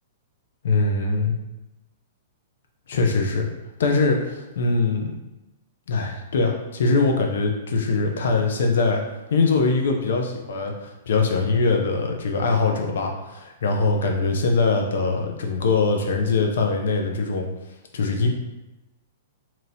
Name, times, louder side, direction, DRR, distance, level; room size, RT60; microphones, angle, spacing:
voice 1, 0.6-1.4 2.9-3.5 3.8-5.2 5.9-9.0 9.3-17.5 17.9-18.3, left 3 dB, 75° left, 2 dB, 0.7 m, -22 dB
3.0 x 2.7 x 4.0 m, 0.98 s
hypercardioid pair, 130°, 0 cm